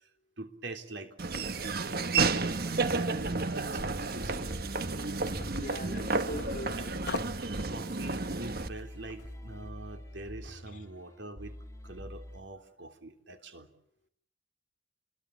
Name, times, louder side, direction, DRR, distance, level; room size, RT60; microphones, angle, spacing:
voice 1, 0.4-1.2 1.4-4.6 5.9-6.1 6.8-6.9 7.7-11.6 11.8-13.7, right 2 dB, 85° right, 6 dB, 3.4 m, -44 dB
Laughter / Walk footsteps, 1.2-8.7, right 3 dB, 55° right, 1.3 m, -31 dB
sound 1, 2.1-12.4, left 1 dB, 15° left, 2.1 m, -47 dB
sound 2, 4.3-9.4, left 4 dB, 60° left, 1.1 m, -46 dB
voice 2, 5.5-6.8 10.7-10.8, left 1 dB, 45° left, 5 dB, 3.5 m, -42 dB
29.5 x 22.5 x 8.4 m, 0.66 s
head